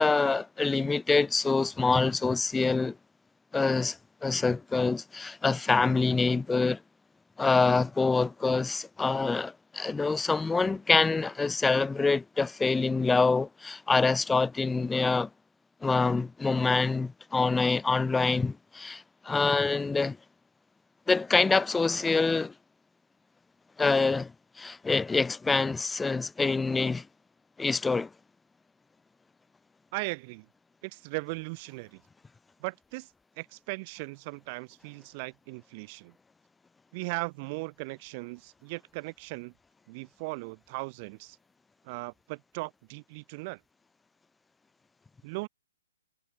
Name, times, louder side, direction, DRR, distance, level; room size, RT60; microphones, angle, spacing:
voice 1, 0.0-3.0 3.5-6.8 7.4-15.3 15.8-20.2 21.1-22.5 23.8-24.3 24.6-27.1 27.6-28.1, left 4 dB, 5° left, 2.5 m, -26 dB
voice 2, 29.9-30.5 30.8-32.0 32.6-33.1 33.4-36.1 36.9-39.5 39.9-41.4 41.8-43.6 45.2-45.5, right 28 dB, 35° right, 2.2 m, -38 dB
hypercardioid pair, 140°, 0 cm